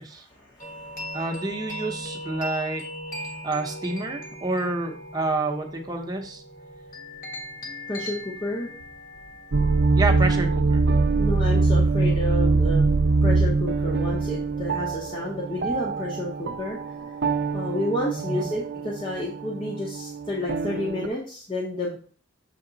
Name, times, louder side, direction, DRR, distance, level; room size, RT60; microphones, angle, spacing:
voice 1, 0.0-1.2 7.9-8.7 11.1-12.9 13.2-16.8 17.5-22.0, left 1 dB, 25° left, -3 dB, 0.9 m, -31 dB
sound 1, 0.6-10.5, equal, 40° left, 1.5 m, -38 dB
voice 2, 1.1-2.8 3.4-6.4 9.9-10.8 18.2-18.5, right 2 dB, 20° right, 2 dB, 0.8 m, -28 dB
sound 2, 9.5-21.1, right 3 dB, 55° right, 0.5 m, -23 dB
6.8 x 3.5 x 3.9 m, 0.42 s
head